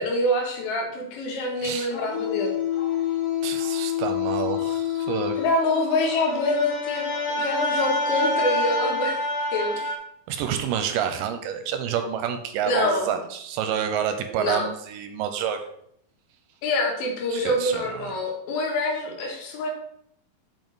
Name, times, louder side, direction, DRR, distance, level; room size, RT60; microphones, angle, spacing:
voice 1, 0.0-2.5 5.4-9.2 9.5-9.8 12.7-13.1 14.4-14.7 16.6-19.7, left 2 dB, 90° left, 0 dB, 3.4 m, -25 dB
voice 2, 1.6-1.9 3.4-5.4 10.3-15.6 17.3-18.2, right 8 dB, 80° right, 8 dB, 2.1 m, -28 dB
sound 1, 1.9-10.0, left 4 dB, 60° left, 1.7 m, -27 dB
7.1 x 5.3 x 3.9 m, 0.73 s
omnidirectional pair, 4.2 m